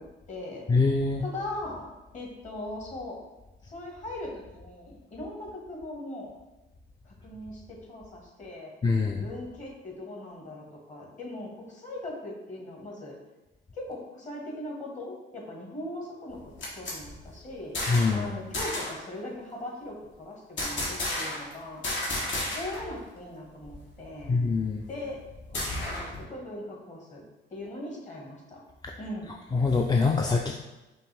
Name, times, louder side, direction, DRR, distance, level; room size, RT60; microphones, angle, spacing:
voice 1, 0.0-0.6 1.2-1.9 2.1-3.2 3.6-6.3 7.0-8.7 9.1-13.2 13.7-17.8 18.1-21.9 22.4-24.3 24.9-25.2 25.5-27.2 27.5-28.6 29.0-29.4, left 1 dB, 35° left, -2 dB, 1.5 m, -40 dB
voice 2, 0.7-1.2 8.8-9.2 17.9-18.3 24.3-24.8 29.5-30.6, left 4 dB, 20° left, 1 dB, 0.3 m, -24 dB
sound 1, 16.3-18.2 18.5-19.0 20.6-21.5 21.8-22.9 23.2-23.3 23.6-26.2, left 1 dB, 70° left, 1.3 m, -33 dB
5.2 x 2.5 x 3.4 m, 1.1 s
cardioid pair, 90°, 20 cm